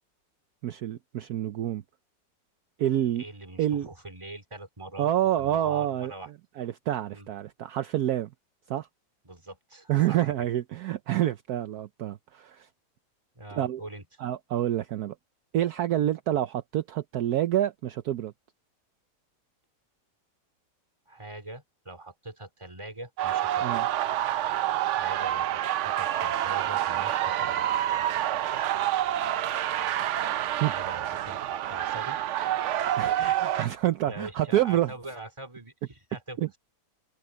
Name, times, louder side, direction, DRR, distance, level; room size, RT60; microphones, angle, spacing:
voice 1, 0.6-1.8 2.8-3.2 3.6-3.9 5.0-6.1 6.6-8.3 8.7-8.9 9.9-12.7 13.5-13.8 14.2-15.1 15.5-18.3 23.6-23.9 30.6-30.7 33.0-34.9 36.4-36.5, right 12 dB, 65° right, 1.2 m, -27 dB
voice 2, 3.2-5.1 5.4-6.3 7.1-7.3 9.2-10.5 13.4-14.0 21.1-23.7 24.9-27.7 30.6-32.6 33.2-33.7 34.0-36.5, right 2 dB, 15° right, 2.6 m, -43 dB
sound 1, 23.2-33.6, right 12 dB, 85° right, 0.6 m, -28 dB
open air
omnidirectional pair, 1.9 m